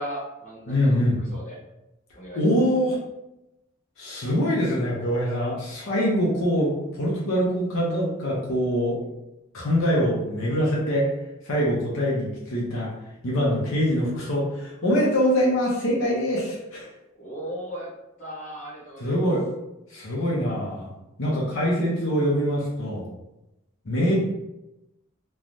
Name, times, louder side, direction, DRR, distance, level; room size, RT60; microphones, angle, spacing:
voice 1, 0.0-1.6 2.1-2.4 17.2-17.9 18.2-19.3 23.9-24.1, equal, 35° left, -6 dB, 1.0 m, -37 dB
voice 2, 0.7-1.1 2.3-3.0 4.0-9.0 9.5-11.0 11.4-12.9 13.2-16.9 19.0-19.4 19.9-20.9 21.2-23.1 23.9-24.1, equal, 75° left, -5 dB, 0.7 m, -24 dB
3.1 x 2.3 x 2.6 m, 0.93 s
head